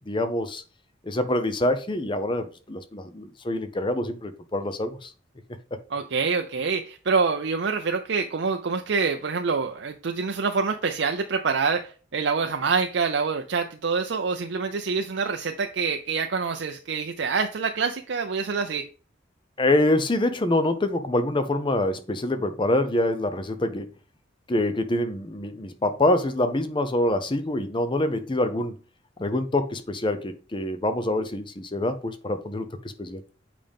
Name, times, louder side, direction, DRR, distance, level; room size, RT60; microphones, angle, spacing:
voice 1, 0.1-0.6 1.1-5.1 19.6-23.9 24.5-28.8 29.2-32.7 33.0-33.2, left 1 dB, 25° left, 0.7 m, -25 dB
voice 2, 5.9-18.9, right 5 dB, 60° right, 0.5 m, -26 dB
7.6 x 5.1 x 3.5 m
head